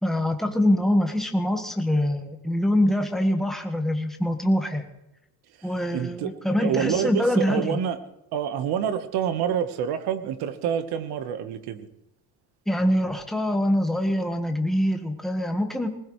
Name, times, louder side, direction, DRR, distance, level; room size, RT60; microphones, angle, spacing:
voice 1, 0.0-4.8 5.6-7.8 12.7-15.9, left 1 dB, ahead, 4 dB, 1.5 m, -24 dB
voice 2, 5.6-6.3 6.6-8.0 8.3-11.9, right 8 dB, 85° right, 10 dB, 1.3 m, -27 dB
20.0 x 20.0 x 3.2 m, 0.88 s
cardioid pair, 150°, 38 cm